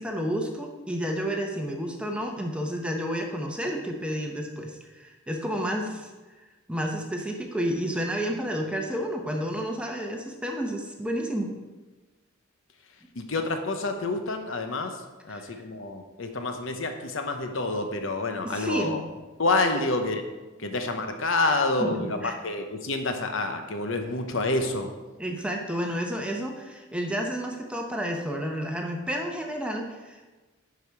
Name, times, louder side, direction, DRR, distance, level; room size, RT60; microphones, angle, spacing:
voice 1, 0.0-6.1 6.7-11.5 15.3-15.7 18.4-19.0 21.8-22.3 25.2-30.3, equal, 5° right, 1 dB, 0.8 m, -31 dB
voice 2, 13.2-15.0 15.2-19.0 19.4-20.2 20.6-24.9, left 2 dB, 60° left, 6 dB, 0.9 m, -28 dB
10.5 x 5.0 x 4.6 m, 1.2 s
head